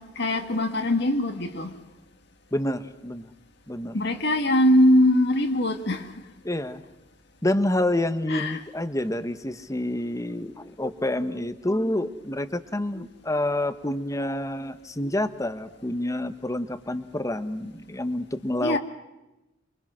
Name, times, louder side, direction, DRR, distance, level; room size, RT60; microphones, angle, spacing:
voice 1, 0.0-1.7 3.9-6.1 8.3-8.6 18.6-18.8, left 1 dB, 65° left, 1.9 m, -22 dB
voice 2, 2.5-3.2 3.7-4.0 6.4-6.8 7.4-18.8, left 1 dB, 15° left, 1.2 m, -28 dB
27.5 x 24.0 x 6.2 m
head